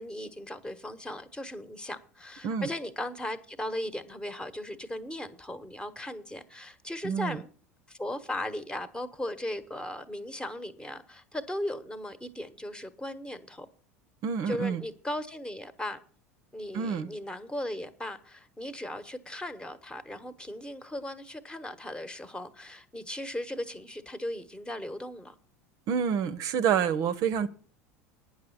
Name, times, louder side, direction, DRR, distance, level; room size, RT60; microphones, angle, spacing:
voice 1, 0.0-7.5 7.9-13.7 14.5-16.0 16.5-25.4, left 1 dB, 10° left, 1.2 m, -37 dB
voice 2, 7.0-7.4 14.2-14.8 16.7-17.1 25.9-27.5, right 7 dB, 50° right, 0.7 m, -28 dB
9.7 x 6.3 x 8.5 m
figure-of-eight pair, 75°, 8 cm